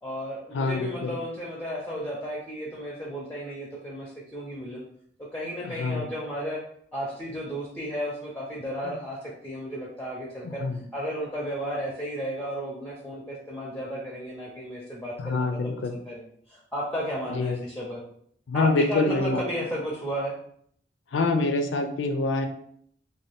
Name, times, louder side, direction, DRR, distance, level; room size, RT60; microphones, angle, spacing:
voice 1, 0.0-4.8 5.3-6.6 6.9-10.6 10.9-18.0 18.5-20.3, equal, 10° left, -3 dB, 0.4 m, -34 dB
voice 2, 0.5-1.1 5.8-6.1 8.8-8.9 10.6-10.8 15.2-16.0 17.3-17.6 18.5-19.4 21.1-22.5, left 3 dB, 85° left, 6 dB, 0.4 m, -25 dB
2.6 x 2.2 x 3.3 m, 0.65 s
head